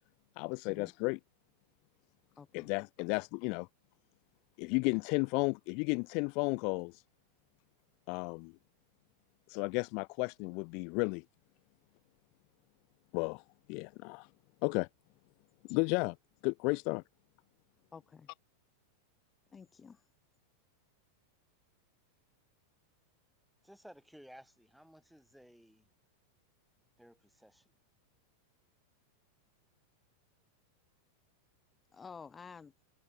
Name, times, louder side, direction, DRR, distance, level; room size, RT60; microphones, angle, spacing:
voice 1, 0.4-1.2 2.5-3.7 4.6-7.0 8.1-8.5 9.5-11.2 13.1-13.4 13.7-14.3 14.6-14.9 15.7-16.2 16.4-17.0, left 34 dB, 45° left, 0.6 m, -33 dB
voice 2, 2.4-2.7 17.9-18.3 19.5-20.0 31.9-32.7, left 5 dB, 15° left, 1.9 m, -51 dB
voice 3, 23.6-25.9 27.0-27.7, equal, ahead, 5.3 m, -57 dB
figure-of-eight pair, 90°, 0 cm